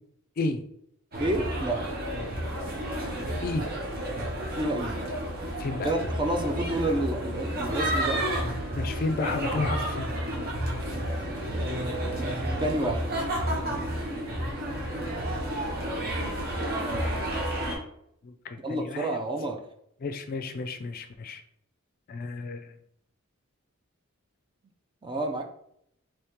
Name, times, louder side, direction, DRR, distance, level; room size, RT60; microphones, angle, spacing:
sound 1, 1.1-17.8, right 1 dB, 50° right, 1.0 m, -31 dB
voice 1, 1.2-1.9 4.5-5.0 5.8-8.2 11.5-13.1 18.6-19.6 25.0-25.5, right 1 dB, 25° right, 4 dB, 0.4 m, -30 dB
voice 2, 3.2-3.7 5.6-5.9 8.7-10.1 18.2-19.2 20.0-21.4 22.1-22.8, left 3 dB, 45° left, 7 dB, 0.4 m, -32 dB
3.5 x 3.1 x 3.0 m, 0.72 s
head